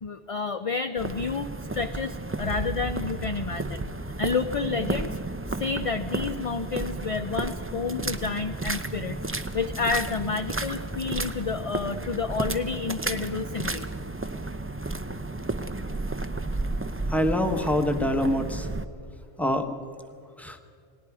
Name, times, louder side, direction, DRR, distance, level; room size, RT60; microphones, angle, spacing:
voice 1, 0.0-3.9 4.2-5.2 5.6-13.9, left 4 dB, 40° left, 7 dB, 0.5 m, -30 dB
sound 1, 1.0-18.8, right 2 dB, 15° right, 0.5 m, -33 dB
sound 2, 2.4-5.6 5.9-6.2, right 1 dB, 60° right, 1.5 m, -38 dB
voice 2, 17.1-18.7 19.4-19.8 20.4-20.6, left 1 dB, ahead, 6 dB, 1.1 m, -25 dB
29.0 x 19.0 x 4.8 m, 2.3 s
omnidirectional pair, 1.2 m